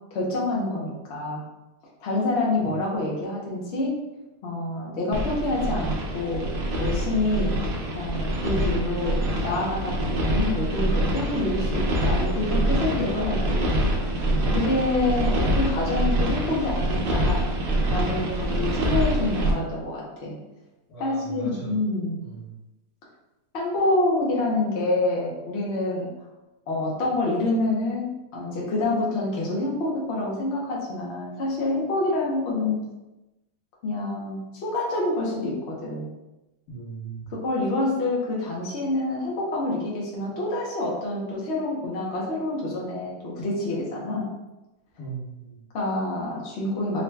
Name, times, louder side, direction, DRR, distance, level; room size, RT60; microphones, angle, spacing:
voice 1, 0.1-1.4 2.0-4.0 4.4-6.5 6.8-7.6 7.9-13.9 14.5-17.5 17.9-20.3 21.0-22.2 23.5-26.1 26.7-32.8 33.8-36.1 37.3-44.3 45.7-47.0, left 2 dB, 50° left, -4 dB, 0.9 m, -27 dB
sound 1, 5.1-19.5, right 1 dB, 80° right, 0.5 m, -25 dB
voice 2, 20.9-21.7 22.2-22.5 36.7-37.3 45.0-45.6, right 3 dB, 70° left, -6 dB, 1.6 m, -38 dB
3.8 x 2.2 x 3.2 m, 1.0 s
omnidirectional pair, 1.6 m